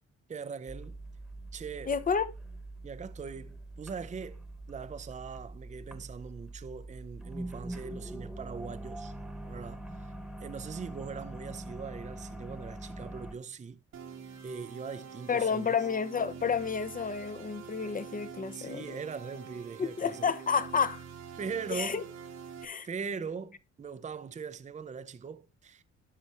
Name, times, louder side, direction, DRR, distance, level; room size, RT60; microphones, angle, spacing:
voice 1, 0.3-1.0 1.5-1.9 2.8-9.1 9.4-10.1 10.4-13.8 14.4-15.8 18.5-20.3 21.4-22.0 22.8-25.8, right 5 dB, 25° right, 0.6 m, -41 dB
sound 1, 0.7-13.3, right 1 dB, ahead, 1.3 m, -43 dB
voice 2, 1.9-2.3 15.3-19.0 19.8-21.0 21.7-22.0 22.6-22.9, left 6 dB, 30° left, 0.8 m, -30 dB
sound 2, 13.9-22.6, right 7 dB, 60° right, 1.4 m, -46 dB
12.5 x 4.7 x 3.0 m
cardioid pair, 90°, 30 cm